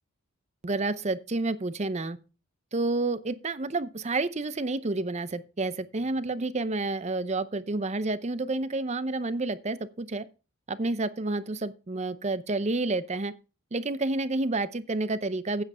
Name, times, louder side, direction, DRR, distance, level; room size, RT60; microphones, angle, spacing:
voice 1, 0.6-2.2 2.7-10.2 10.7-13.3 13.7-15.6, right 2 dB, 30° right, 0.6 m, -29 dB
8.9 x 7.7 x 5.4 m
head